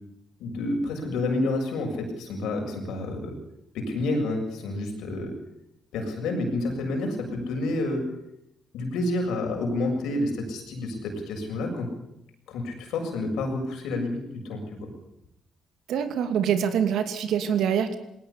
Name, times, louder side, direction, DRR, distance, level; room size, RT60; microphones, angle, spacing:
voice 1, 0.4-3.3 3.7-5.3 5.9-8.1 8.7-11.9 12.5-14.9, left 2 dB, 85° left, 2 dB, 7.1 m, -29 dB
voice 2, 15.9-18.0, right 8 dB, 80° right, 8 dB, 2.8 m, -25 dB
20.5 x 18.0 x 8.7 m, 0.82 s
cardioid pair, 90°, 0 cm